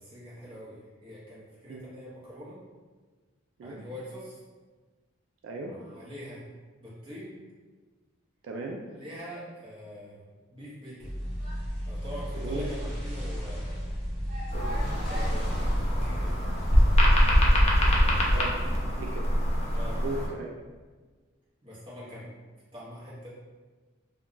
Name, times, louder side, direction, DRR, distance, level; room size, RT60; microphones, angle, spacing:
voice 1, 0.0-2.6 3.6-4.4 5.7-6.4 6.8-7.3 9.0-10.2 10.5-11.1 11.9-13.8 14.8-17.1 18.3-19.0 19.7-20.0 21.6-22.3 22.7-23.3, equal, 25° right, -8 dB, 0.8 m, -44 dB
voice 2, 5.4-5.7 8.4-8.8 12.3-12.7 14.5-15.0 18.3-18.6 18.9-19.3 20.0-20.5, right 2 dB, 70° right, -1 dB, 0.3 m, -37 dB
sound 1, 11.0-18.4, equal, ahead, 1.0 m, -34 dB
sound 2, 14.5-20.3, equal, 30° left, 0.4 m, -24 dB
2.2 x 2.2 x 3.7 m, 1.4 s
head